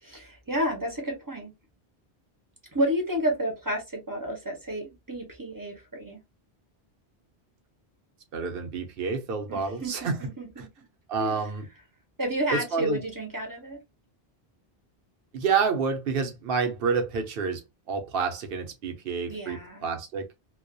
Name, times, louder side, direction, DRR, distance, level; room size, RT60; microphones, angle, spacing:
voice 1, 0.0-1.5 2.7-6.2 9.5-10.7 11.2-11.4 12.2-13.8 19.3-19.8, equal, 25° right, 0.5 m, -31 dB
voice 2, 8.3-10.2 11.1-11.7 12.5-13.0 15.3-17.6 17.9-20.3, right 5 dB, 70° right, 0.8 m, -28 dB
2.3 x 2.1 x 2.5 m
omnidirectional pair, 1.0 m